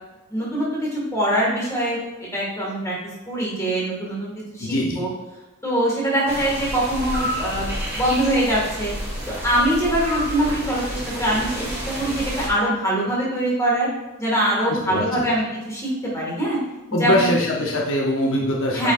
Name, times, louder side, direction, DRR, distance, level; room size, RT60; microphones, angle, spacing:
voice 1, 0.3-2.9 3.3-5.1 5.6-8.9 9.4-13.9 14.2-16.6 17.0-17.3 18.7-18.9, right 1 dB, 15° left, -5 dB, 1.7 m, -23 dB
voice 2, 4.6-5.0 14.7-15.3 16.9-18.9, left 1 dB, 60° left, -2 dB, 0.8 m, -23 dB
sound 1, 6.3-12.5, equal, 15° right, 1.6 m, -30 dB
8.0 x 4.9 x 2.5 m, 1.1 s
head